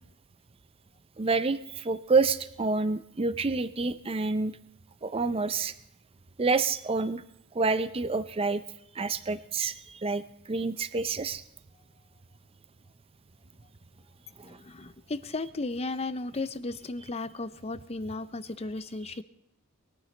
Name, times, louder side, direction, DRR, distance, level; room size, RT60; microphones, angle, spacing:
voice 1, 1.2-4.6 5.0-5.7 6.4-7.2 7.5-8.6 8.9-11.4 14.4-14.6 19.1-19.2, right 4 dB, 25° right, 12 dB, 0.5 m, -28 dB
voice 2, 14.4-19.2, left 3 dB, 25° left, 14 dB, 0.6 m, -35 dB
22.0 x 13.5 x 3.3 m, 0.79 s
head